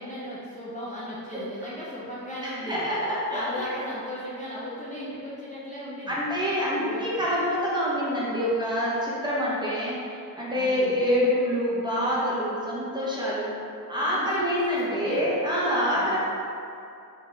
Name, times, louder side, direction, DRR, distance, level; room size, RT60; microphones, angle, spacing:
voice 1, 0.0-2.9 3.3-6.2 6.8-7.1 10.5-11.0 14.0-15.3 16.0-16.2, left 1 dB, 20° left, -9 dB, 0.6 m, -36 dB
voice 2, 2.6-3.4 6.1-10.0 10.4-13.5 13.9-16.2, equal, 10° right, -7 dB, 0.8 m, -26 dB
3.5 x 2.3 x 3.0 m, 2.6 s
cardioid pair, 85°, 39 cm